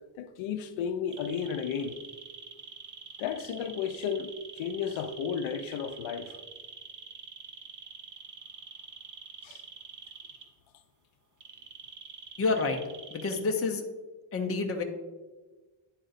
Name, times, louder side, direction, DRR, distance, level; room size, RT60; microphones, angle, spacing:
voice 1, 0.2-2.0 3.2-6.4 9.4-9.6, left 7 dB, 75° left, 0.6 m, -33 dB
sound 1, 1.1-10.4 11.4-13.4, right 5 dB, 40° right, 0.8 m, -46 dB
voice 2, 12.4-12.8 13.1-13.9 14.3-14.8, left 3 dB, 30° left, 0.6 m, -28 dB
10.0 x 4.1 x 4.0 m
wide cardioid pair, 165°, 48 cm